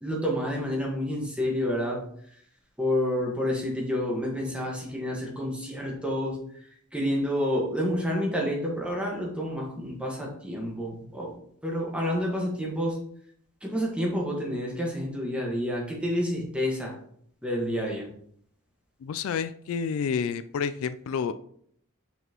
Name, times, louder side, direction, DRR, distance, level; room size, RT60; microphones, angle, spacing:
voice 1, 0.0-2.0 2.8-6.4 6.9-11.3 11.6-13.0 13.6-16.9 17.4-18.0, equal, 5° right, -2 dB, 1.4 m, -29 dB
voice 2, 19.0-21.3, left 6 dB, 65° left, 13 dB, 0.3 m, -29 dB
5.9 x 5.6 x 3.0 m, 0.65 s
head